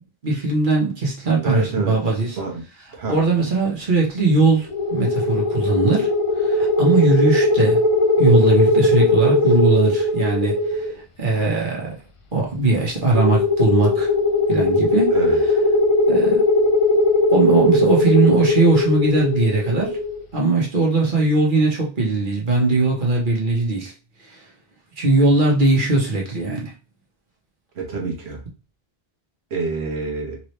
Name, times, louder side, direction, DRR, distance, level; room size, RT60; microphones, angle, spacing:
voice 1, 0.2-2.3 3.1-6.1 6.4-7.8 8.2-10.9 11.2-11.9 12.3-14.1 14.5-15.1 16.1-16.5 17.3-20.0 20.3-23.9 24.3-24.4 25.0-26.7, right 3 dB, 50° right, 1.3 m, -19 dB
voice 2, 1.4-2.6 2.9-3.2 15.1-15.4 27.7-28.4 29.5-30.4, right 4 dB, 80° right, 1.3 m, -27 dB
sound 1, 4.7-10.9 13.1-20.2, left 2 dB, 45° left, 0.4 m, -19 dB
3.7 x 3.1 x 3.2 m
omnidirectional pair, 1.1 m